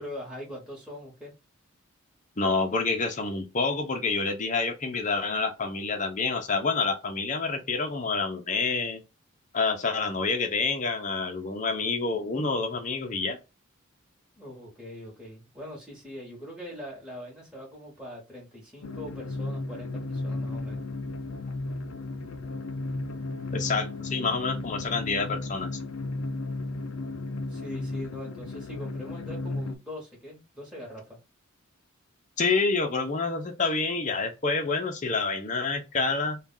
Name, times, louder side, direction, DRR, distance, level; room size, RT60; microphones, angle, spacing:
voice 1, 0.0-1.3 14.4-20.8 27.5-31.2, equal, 5° right, 1.3 m, -42 dB
voice 2, 2.4-9.0 9.5-13.4 23.5-25.7 32.4-36.4, left 4 dB, 35° left, 0.7 m, -28 dB
sound 1, 18.8-29.7, left 2 dB, 70° left, 0.5 m, -34 dB
3.3 x 2.3 x 3.8 m
head